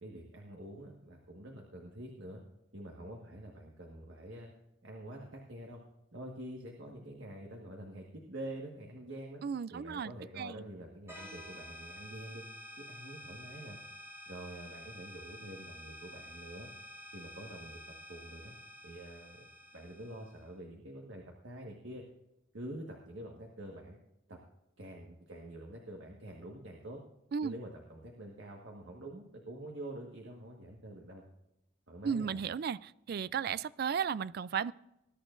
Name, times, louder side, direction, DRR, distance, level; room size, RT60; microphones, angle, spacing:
voice 1, 0.0-2.4 2.7-4.5 4.8-5.8 6.1-9.4 9.7-12.4 12.8-13.8 14.3-16.7 17.1-17.8 18.1-18.5 18.8-19.5 19.7-22.0 22.5-24.0 24.3-24.4 24.8-27.0 27.4-31.2 31.9-32.4, right 1 dB, 70° right, 1.6 m, -46 dB
voice 2, 9.4-10.1 10.4-10.6 27.3-27.6 32.0-34.7, right 7 dB, 50° right, 0.3 m, -34 dB
sound 1, 11.1-20.5, equal, 15° right, 2.3 m, -50 dB
20.5 x 11.5 x 2.6 m
head